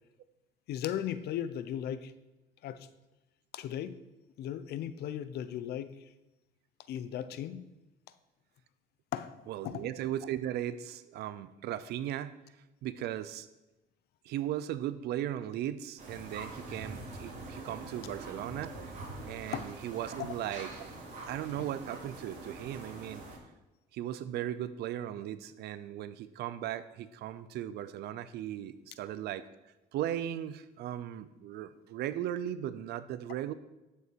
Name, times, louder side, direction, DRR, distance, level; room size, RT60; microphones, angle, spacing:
voice 1, 0.7-2.1 2.6-2.9 3.5-4.0 4.4-5.9 6.9-7.6 9.1-9.4 9.6-9.9 19.5-19.7 20.2-20.3 21.6-21.7, left 10 dB, 70° left, 13 dB, 0.8 m, -36 dB
voice 2, 9.5-12.3 12.8-13.5 14.2-18.7 19.3-20.9 21.3-23.3 23.9-29.4 29.9-33.5, right 11 dB, 75° right, 14 dB, 0.7 m, -37 dB
sound 1, 16.0-23.4, right 2 dB, 50° right, 3.8 m, -44 dB
12.5 x 6.8 x 4.7 m, 1.0 s
cardioid pair, 110°, 17 cm